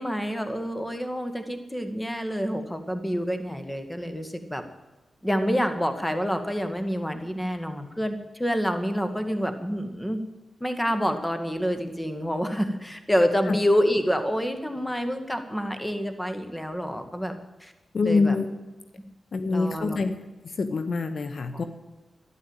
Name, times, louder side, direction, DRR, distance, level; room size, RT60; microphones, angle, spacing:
voice 1, 0.0-4.6 5.2-10.2 10.6-17.3 17.6-17.7 18.0-18.4 19.5-20.0 21.5-21.6, equal, 10° left, 7 dB, 2.0 m, -27 dB
voice 2, 17.9-18.5 19.3-20.1 20.4-21.6, left 4 dB, 65° left, 10 dB, 1.0 m, -25 dB
12.5 x 11.0 x 8.9 m, 1.2 s
cardioid pair, 60°, 0 cm